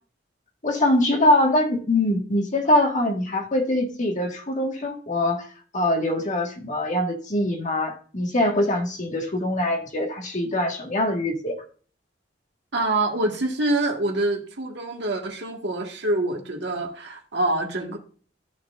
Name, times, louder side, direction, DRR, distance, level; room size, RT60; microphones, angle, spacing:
voice 1, 0.6-5.5 5.7-11.6, left 1 dB, 45° left, 2 dB, 1.8 m, -23 dB
voice 2, 12.7-18.0, right 2 dB, 70° right, 2 dB, 1.8 m, -25 dB
13.5 x 4.6 x 2.6 m, 0.41 s
head